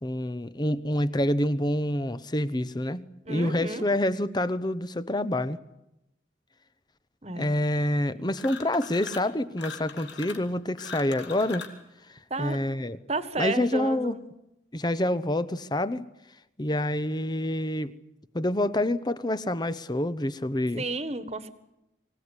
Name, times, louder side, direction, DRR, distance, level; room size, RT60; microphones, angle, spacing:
voice 1, 0.0-5.6 7.4-11.7 12.1-13.0 13.4-14.2 14.7-16.1 16.6-17.9 18.3-20.8, left 1 dB, 20° left, 15 dB, 0.9 m, -27 dB
voice 2, 3.3-3.8 7.2-7.5 12.3-12.6 13.1-14.2 20.8-21.5, right 2 dB, 35° right, 13 dB, 1.6 m, -32 dB
sound 1, 8.3-9.3 9.6-11.8, left 5 dB, 70° left, 3.0 m, -41 dB
24.5 x 17.5 x 9.8 m, 0.89 s
head